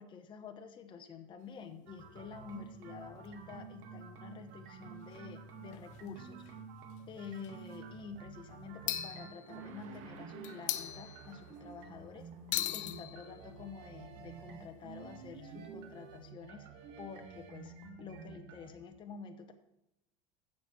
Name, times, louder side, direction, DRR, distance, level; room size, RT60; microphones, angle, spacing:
voice 1, 0.0-6.4 7.1-12.3 12.7-16.7 17.0-19.5, left 6 dB, 30° left, 6 dB, 1.0 m, -49 dB
sound 1, 1.4-2.5 3.2-3.3 3.5-3.6 5.1-5.2 5.7-6.1 6.4-6.6 7.3-7.8 8.9-10.0 10.4-11.7 12.5-16.3, left 13 dB, 50° left, 0.6 m, -42 dB
sound 2, 1.9-18.8, right 6 dB, 75° right, 1.8 m, -50 dB
15.5 x 6.0 x 4.6 m, 0.86 s
cardioid pair, 145°, 16 cm